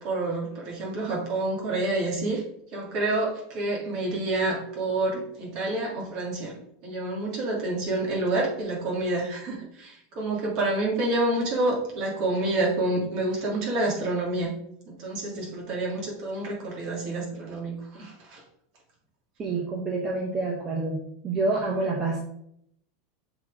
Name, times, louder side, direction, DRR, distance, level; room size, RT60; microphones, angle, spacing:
voice 1, 0.0-2.4 2.7-6.5 6.8-14.5 14.9-18.4, right 2 dB, 45° right, -2 dB, 2.7 m, -28 dB
voice 2, 19.4-21.0 21.2-22.2, right 3 dB, 20° right, -3 dB, 1.2 m, -27 dB
6.7 x 4.4 x 4.9 m, 0.72 s
supercardioid pair, 165°, 0 cm